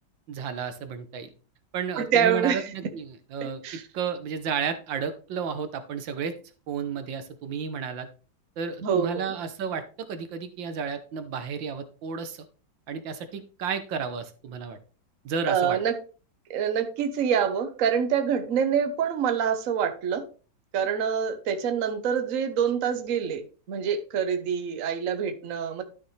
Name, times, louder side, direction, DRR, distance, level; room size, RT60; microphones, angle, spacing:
voice 1, 0.3-1.3 1.7-3.6 3.9-6.3 6.7-8.1 8.6-12.4 12.9-14.8 15.2-15.8, right 6 dB, 75° right, 10 dB, 1.6 m, -32 dB
voice 2, 2.0-2.7 3.6-3.8 8.8-9.3 15.5-15.9 16.5-20.3 20.7-25.8, right 7 dB, 50° right, 8 dB, 1.2 m, -26 dB
12.0 x 6.0 x 3.2 m, 0.36 s
omnidirectional pair, 2.1 m